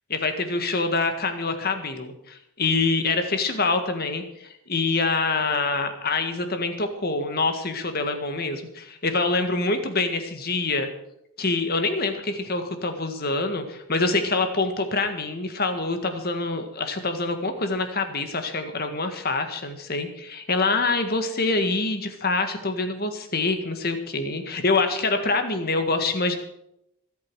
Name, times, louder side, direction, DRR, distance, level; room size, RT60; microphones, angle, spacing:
voice 1, 0.1-10.9 11.4-26.3, left 3 dB, 45° left, 7 dB, 1.7 m, -25 dB
24.5 x 8.7 x 4.8 m, 0.81 s
head